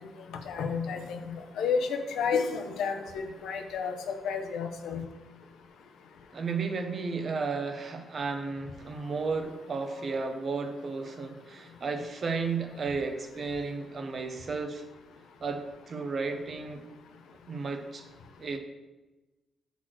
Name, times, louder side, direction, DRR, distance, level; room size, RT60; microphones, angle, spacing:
voice 1, 0.5-5.0, left 5 dB, 80° left, 5 dB, 0.8 m, -31 dB
voice 2, 6.3-14.8 15.4-15.6 15.9-16.8 17.5-18.0 18.4-18.6, right 4 dB, 35° right, 7 dB, 0.6 m, -33 dB
6.2 x 4.1 x 6.1 m, 1.1 s
wide cardioid pair, 180°, 0 cm